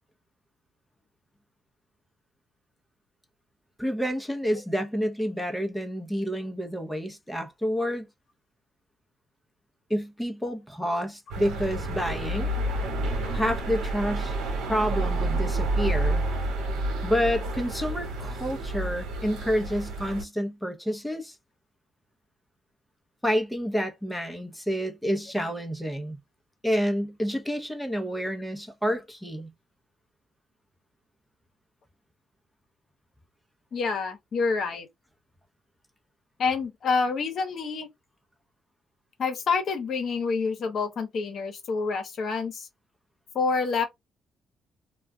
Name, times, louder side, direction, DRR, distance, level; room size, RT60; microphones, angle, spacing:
voice 1, 3.8-8.1 9.9-12.5 13.3-14.3 14.6-16.2 17.0-21.4 23.2-26.2 26.6-29.5, equal, ahead, 0.7 m, -29 dB
sound 1, 11.3-20.2, right 2 dB, 90° right, 1.0 m, -29 dB
voice 2, 33.7-34.9 36.4-37.9 39.2-42.7 43.3-43.9, left 4 dB, 60° left, 0.9 m, -27 dB
2.3 x 2.2 x 3.5 m
cardioid pair, 90°, 0 cm